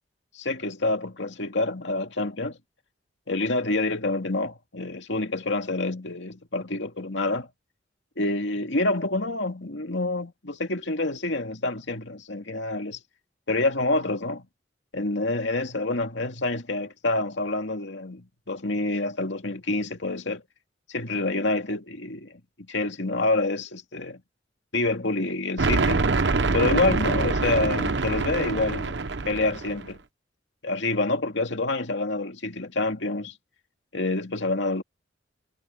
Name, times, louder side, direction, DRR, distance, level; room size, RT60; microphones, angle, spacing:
voice 1, 0.3-2.6 3.3-7.5 8.2-13.0 13.5-14.5 14.9-20.4 20.9-22.4 22.7-24.2 24.7-26.1 26.5-29.0 29.3-30.0 30.6-33.4 33.9-34.8, left 2 dB, 70° left, 2.4 m, -27 dB
sound 1, 25.6-29.9, right 3 dB, 65° right, 1.0 m, -25 dB
head